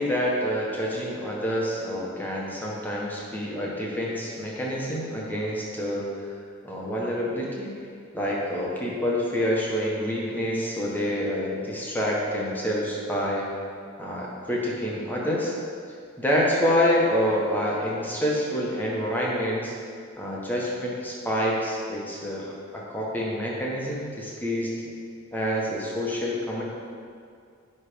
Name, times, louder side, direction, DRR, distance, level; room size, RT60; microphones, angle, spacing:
voice 1, 0.0-6.3 6.6-7.9 8.1-13.5 14.0-15.5 16.2-19.7 20.2-22.4 22.7-24.7 25.3-26.6, equal, 10° left, -4 dB, 1.1 m, -27 dB
9.5 x 3.3 x 5.1 m, 2.3 s
head